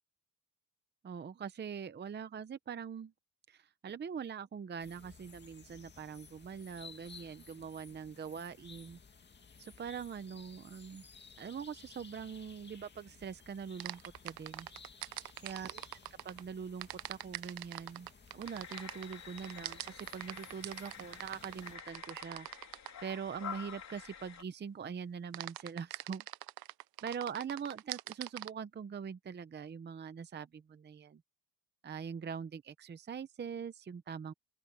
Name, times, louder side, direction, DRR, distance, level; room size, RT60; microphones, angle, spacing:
voice 1, 1.0-3.1 3.5-9.0 9.6-11.0 11.4-14.7 15.4-15.8 16.2-18.1 18.3-22.5 23.0-26.2 27.0-31.2 31.8-34.3, right 7 dB, 30° right, 0.7 m, -43 dB
sound 1, 4.8-21.8, left 5 dB, 30° left, 2.2 m, -57 dB
sound 2, 13.8-16.4 16.8-23.0 25.3-28.5, right 15 dB, 75° right, 0.6 m, -43 dB
sound 3, 18.4-24.4, left 8 dB, 50° left, 3.5 m, -49 dB
open air
wide cardioid pair, 160°, 37 cm